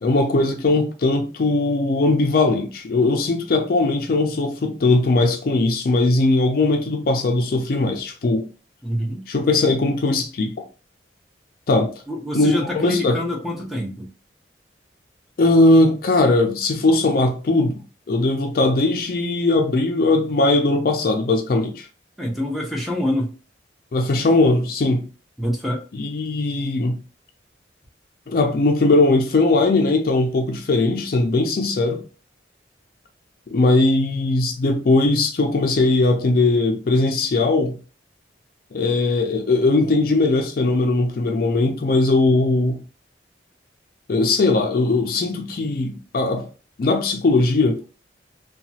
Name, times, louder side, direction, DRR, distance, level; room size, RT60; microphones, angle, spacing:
voice 1, 0.0-8.5 9.3-10.6 11.7-11.9 12.3-13.2 15.4-17.8 18.1-21.9 23.9-25.0 25.9-27.0 28.3-32.0 33.5-37.8 38.7-42.8 44.1-46.5 46.8-47.8, left 2 dB, 50° left, 0.4 m, -19 dB
voice 2, 8.8-9.2 12.1-14.1 22.2-23.3 25.4-25.8, left 1 dB, ahead, 0.6 m, -26 dB
2.8 x 2.3 x 2.7 m
head